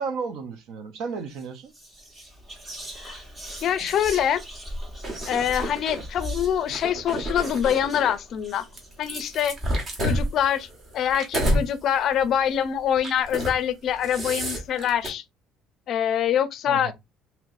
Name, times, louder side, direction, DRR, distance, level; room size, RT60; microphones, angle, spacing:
voice 1, 0.0-1.7 16.7-16.9, right 5 dB, 70° right, 0.8 m, -33 dB
Whispering, 1.3-1.5 1.7-9.8, equal, 25° right, 1.0 m, -39 dB
voice 2, 3.6-4.4 5.2-8.6 9.0-9.6 10.0-10.7 10.9-15.2 15.9-16.9, left 9 dB, 50° left, 0.4 m, -24 dB
sound 1, 5.0-6.0 6.6-8.1 8.8-11.7 12.1-12.3 13.0-13.6 13.9-15.1, equal, 40° right, 1.2 m, -29 dB
3.1 x 2.9 x 2.5 m
cardioid pair, 135°, 0 cm